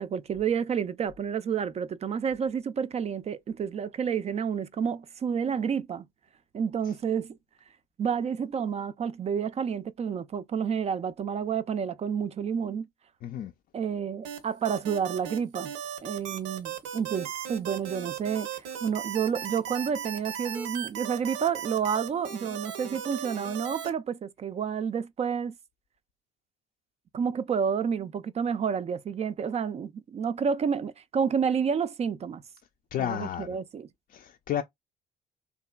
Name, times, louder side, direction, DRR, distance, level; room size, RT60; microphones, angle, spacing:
voice 1, 0.0-6.1 6.5-7.4 8.0-12.9 13.7-15.7 16.0-25.5 27.1-32.4 33.0-33.9, right 7 dB, 35° right, 0.4 m, -30 dB
voice 2, 13.2-13.5 32.9-33.5 34.1-34.6, left 10 dB, 50° left, 0.4 m, -31 dB
sound 1, 14.2-23.9, right 9 dB, 85° right, 0.7 m, -37 dB
2.7 x 2.4 x 2.2 m
supercardioid pair, 65°, 18 cm